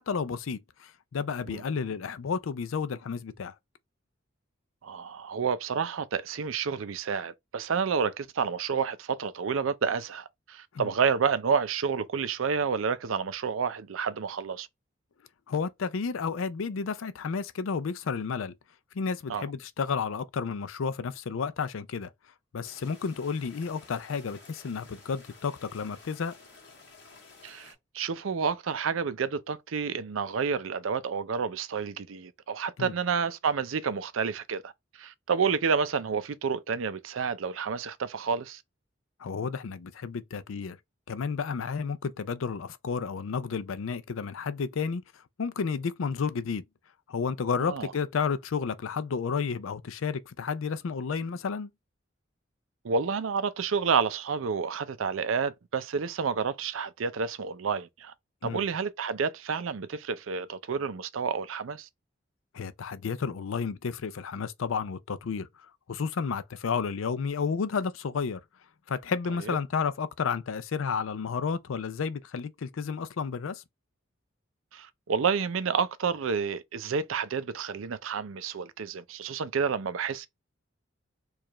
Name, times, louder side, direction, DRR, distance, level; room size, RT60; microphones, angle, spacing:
voice 1, 0.0-3.5 10.7-10.9 15.5-18.5 18.9-22.1 22.5-26.4 32.8-32.9 39.2-40.8 41.1-45.0 45.4-46.6 47.1-51.7 58.4-58.6 62.5-65.5 65.9-68.4 68.9-73.6, left 5 dB, 90° left, 0.5 m, -31 dB
voice 2, 4.8-14.7 19.3-19.5 27.4-34.7 35.0-38.6 47.6-47.9 52.8-58.1 58.4-61.9 69.5-69.6 74.7-80.3, right 6 dB, 85° right, 0.5 m, -29 dB
sound 1, 22.6-27.7, left 4 dB, 60° left, 1.6 m, -53 dB
4.6 x 2.4 x 2.9 m
head